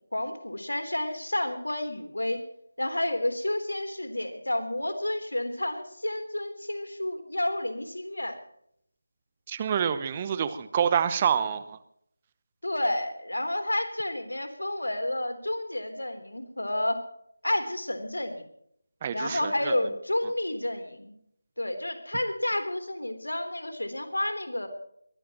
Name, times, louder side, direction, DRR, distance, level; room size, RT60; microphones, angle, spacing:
voice 1, 0.0-2.4 2.8-8.4 12.6-17.0 17.4-18.5 19.1-21.1 21.6-24.7, left 1 dB, 80° left, 7 dB, 3.7 m, -30 dB
voice 2, 9.5-11.8 19.0-19.7, right 8 dB, 20° right, 13 dB, 0.8 m, -27 dB
22.0 x 18.5 x 3.1 m, 0.71 s
figure-of-eight pair, 165°, 0 cm